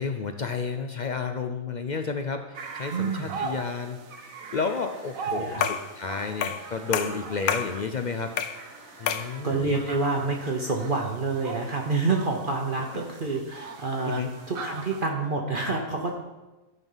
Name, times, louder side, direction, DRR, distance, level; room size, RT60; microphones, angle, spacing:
voice 1, 0.0-8.3 9.0-9.8 12.9-13.0 14.0-14.3, left 5 dB, 65° left, 6 dB, 0.4 m, -31 dB
sound 1, 2.5-15.0, right 5 dB, 75° right, 1.4 m, -40 dB
voice 2, 2.9-3.3 5.3-5.7 9.4-14.2 14.5-16.1, right 3 dB, 45° right, 1 dB, 1.0 m, -28 dB
sound 2, 5.6-5.9 6.4-6.7 6.9-7.7 8.4-8.6 9.1-9.3, left 8 dB, 90° left, 1.1 m, -28 dB
12.5 x 5.4 x 5.5 m, 1.1 s
omnidirectional pair, 1.5 m